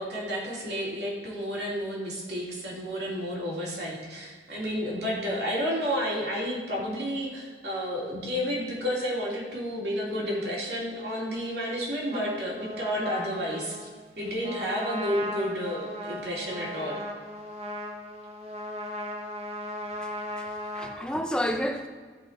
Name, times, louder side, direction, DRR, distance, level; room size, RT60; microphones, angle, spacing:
voice 1, 0.0-13.9 14.2-17.0, equal, 75° right, -4 dB, 2.9 m, -31 dB
Trumpet, 12.1-21.0, equal, 35° right, 1.1 m, -37 dB
voice 2, 20.0-21.9, equal, 5° left, 4 dB, 0.7 m, -31 dB
15.0 x 5.0 x 4.4 m, 1.5 s
head